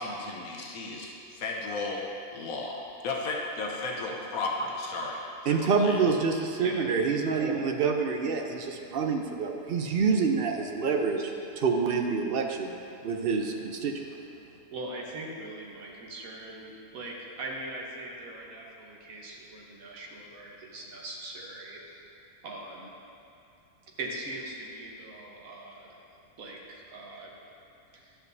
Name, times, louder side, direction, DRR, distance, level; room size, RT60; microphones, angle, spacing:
voice 1, 0.0-2.0 2.3-5.2 5.5-6.0, left 3 dB, 90° left, -1 dB, 1.3 m, -34 dB
voice 2, 5.5-11.2 11.6-12.7 13.0-14.0, right 5 dB, 55° right, 3 dB, 0.7 m, -27 dB
voice 3, 14.7-22.0 22.4-22.9 24.0-25.9 26.4-27.3 27.9-28.1, right 2 dB, 75° right, -2 dB, 1.5 m, -41 dB
11.0 x 8.0 x 2.7 m, 2.6 s
omnidirectional pair, 1.5 m